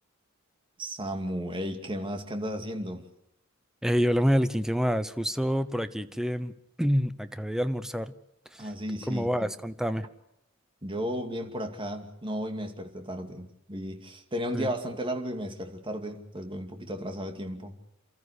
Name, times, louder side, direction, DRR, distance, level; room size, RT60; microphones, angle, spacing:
voice 1, 0.8-3.0 8.6-9.5 10.8-17.7, equal, 25° right, 5 dB, 2.4 m, -34 dB
voice 2, 3.8-6.5 6.8-8.1 9.1-10.1 14.5-14.7, equal, ahead, 12 dB, 0.8 m, -27 dB
29.0 x 13.5 x 8.2 m, 0.80 s
head